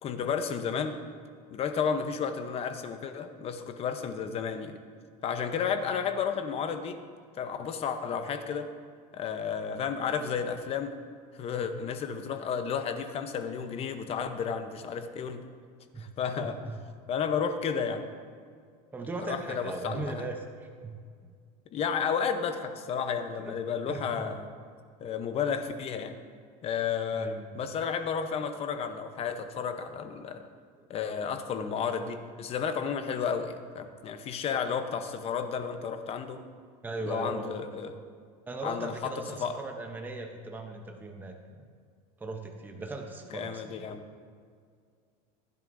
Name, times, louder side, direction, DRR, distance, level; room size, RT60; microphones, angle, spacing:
voice 1, 0.0-1.0 1.5-4.8 5.2-7.0 7.4-8.7 9.1-10.9 11.3-15.4 16.0-16.6 17.1-18.1 19.2-20.3 21.7-24.5 25.0-26.1 26.6-30.5 30.9-36.4 37.0-37.9 38.6-39.1 39.4-39.6 43.3-44.0, left 6 dB, 30° left, 8 dB, 0.8 m, -32 dB
voice 2, 16.4-16.8 18.9-21.0 23.3-23.6 23.9-24.3 27.1-27.6 30.8-30.9 36.8-37.5 38.5-41.6 42.2-44.0, right 2 dB, 10° right, 3 dB, 0.8 m, -38 dB
15.5 x 10.5 x 2.6 m, 2.1 s
supercardioid pair, 145°, 19 cm